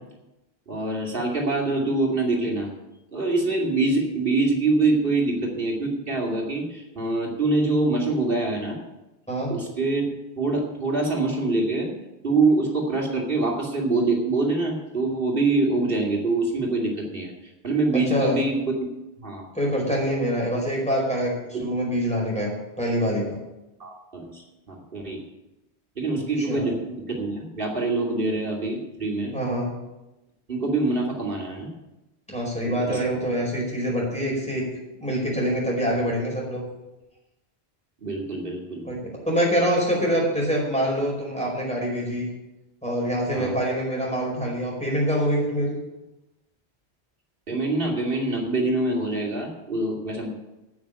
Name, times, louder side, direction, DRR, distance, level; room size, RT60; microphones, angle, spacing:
voice 1, 0.7-2.7 3.1-8.8 9.5-10.1 10.4-11.9 12.2-17.3 17.6-18.9 19.2-19.4 23.8-25.2 26.0-29.3 30.5-31.7 32.6-33.0 38.0-38.9 43.3-43.6 47.5-50.3, right 2 dB, 55° right, -1 dB, 2.8 m, -25 dB
voice 2, 19.5-22.5 22.8-23.4 26.1-26.2 26.5-26.7 29.3-29.7 32.3-34.7 35.0-36.6 38.8-39.0 39.3-42.3 42.8-45.8, equal, 5° left, -4 dB, 4.9 m, -25 dB
9.2 x 8.6 x 8.8 m, 0.99 s
omnidirectional pair, 1.1 m